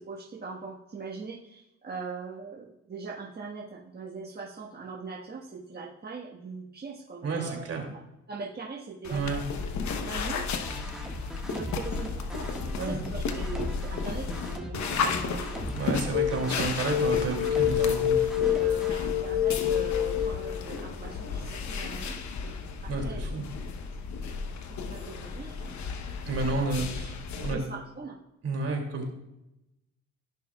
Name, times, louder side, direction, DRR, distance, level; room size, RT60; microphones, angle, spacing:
voice 1, 0.0-8.0 8.3-9.4 10.0-10.5 11.4-16.0 16.3-16.6 18.4-22.2 22.8-23.2 24.9-25.9 26.3-26.7 27.5-28.2, right 4 dB, 35° right, -4 dB, 1.5 m, -41 dB
voice 2, 7.2-7.8 9.1-9.4 12.8-13.0 15.8-18.2 22.9-23.4 26.3-27.6 28.4-29.1, right 3 dB, 55° right, 1 dB, 2.6 m, -31 dB
sound 1, 9.0-27.5, left 5 dB, 70° left, 1.0 m, -34 dB
sound 2, 10.6-18.9, equal, ahead, 1.6 m, -40 dB
sound 3, 16.1-16.4 16.8-20.6, left 11 dB, 85° left, 1.4 m, -26 dB
15.5 x 6.0 x 2.3 m, 0.89 s
cardioid pair, 90°, 30 cm